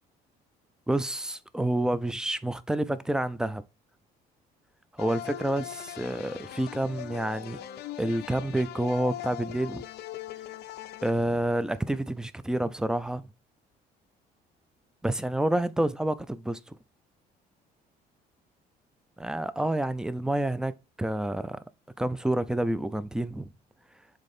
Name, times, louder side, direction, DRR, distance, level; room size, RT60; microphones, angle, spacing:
voice 1, 0.9-3.6 5.0-7.6 8.0-9.8 11.0-13.3 15.0-16.7 19.2-20.7 21.0-21.6 22.0-23.5, right 1 dB, 5° right, 0.5 m, -28 dB
sound 1, 5.0-12.0, left 13 dB, 75° left, 0.6 m, -41 dB
6.5 x 3.7 x 4.3 m
cardioid pair, 110°, 17 cm